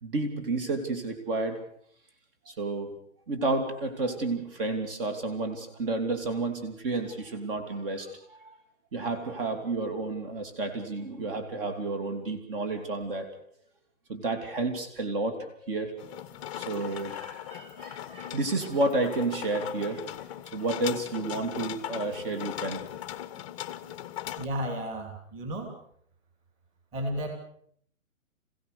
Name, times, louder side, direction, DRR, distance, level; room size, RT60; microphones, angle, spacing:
voice 1, 0.0-1.6 2.5-2.9 3.3-8.6 8.9-13.3 14.1-16.2 16.5-20.0 20.5-22.8, right 2 dB, 40° right, 7 dB, 3.1 m, -31 dB
sound 1, 16.0-24.5, left 12 dB, 25° left, 0.9 m, -39 dB
voice 2, 24.4-25.8 26.9-27.3, equal, 20° right, 4 dB, 2.9 m, -33 dB
26.5 x 16.5 x 6.8 m, 0.65 s
hypercardioid pair, 160°, 42 cm